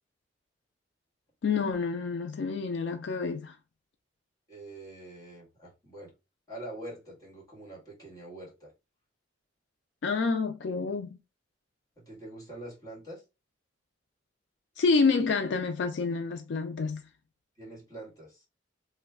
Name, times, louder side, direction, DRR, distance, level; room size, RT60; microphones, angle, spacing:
voice 1, 1.4-3.6 10.0-11.2 14.8-17.0, left 4 dB, 70° left, 0.4 m, -28 dB
voice 2, 4.5-6.1 6.5-8.7 12.0-13.2 17.6-18.5, right 1 dB, 20° left, 1.6 m, -45 dB
3.1 x 2.2 x 3.4 m
head